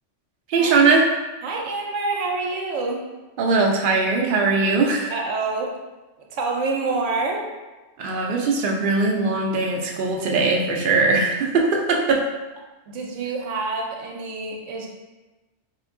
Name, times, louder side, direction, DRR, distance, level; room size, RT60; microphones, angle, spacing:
voice 1, 0.5-1.1 3.4-5.1 8.0-12.3, right 3 dB, 60° right, 0 dB, 0.6 m, -20 dB
voice 2, 1.4-3.0 5.1-5.8 6.2-7.5 12.9-14.9, right 3 dB, 85° right, 1 dB, 1.0 m, -27 dB
3.5 x 2.9 x 2.5 m, 1.1 s
omnidirectional pair, 1.2 m